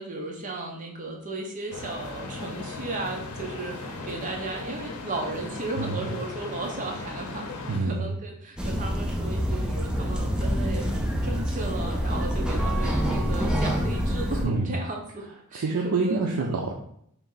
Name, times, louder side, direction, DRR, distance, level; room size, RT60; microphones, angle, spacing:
voice 1, 0.0-7.5 7.8-10.9 11.2-15.3 15.5-16.2, right 2 dB, 35° right, 0 dB, 0.7 m, -35 dB
sound 1, 1.7-7.8, left 3 dB, 90° left, 0.6 m, -37 dB
voice 2, 5.8-6.2 7.7-8.2 14.4-14.8 15.5-16.7, right 3 dB, 75° right, 0 dB, 0.5 m, -27 dB
sound 2, 8.6-14.5, equal, 5° right, 0.4 m, -26 dB
3.4 x 2.7 x 3.9 m, 0.69 s
head